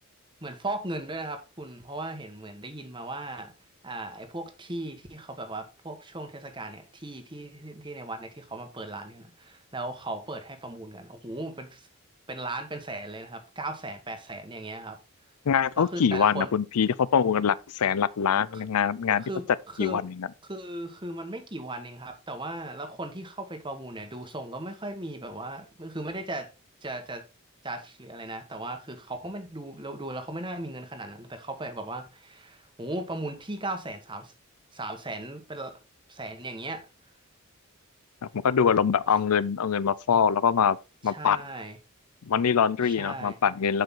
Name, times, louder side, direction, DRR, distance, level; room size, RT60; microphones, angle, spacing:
voice 1, 0.4-3.5 3.8-11.9 12.3-15.0 15.8-16.5 18.5-18.6 19.2-20.0 20.4-26.5 26.8-27.2 27.6-34.3 34.7-35.8 36.1-36.8 39.1-39.2 41.0-41.8 42.8-43.4, right 2 dB, 20° right, 1.5 m, -37 dB
voice 2, 15.5-19.2 19.8-20.3 38.4-40.8 41.0-41.4 42.3-43.8, left 7 dB, 90° left, 0.5 m, -24 dB
11.5 x 5.5 x 3.8 m
head